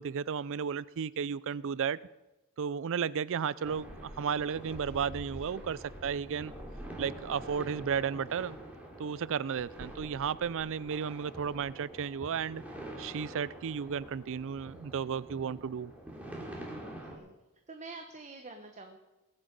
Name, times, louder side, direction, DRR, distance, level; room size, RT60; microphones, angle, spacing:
voice 1, 0.0-2.0 2.6-6.5 7.0-8.6 9.0-12.6 13.0-15.9, right 7 dB, 60° right, 0.4 m, -33 dB
sound 1, 3.6-17.2, right 1 dB, 5° right, 2.9 m, -46 dB
voice 2, 16.8-17.3 17.7-19.0, right 3 dB, 30° right, 1.0 m, -48 dB
21.0 x 8.7 x 5.2 m
head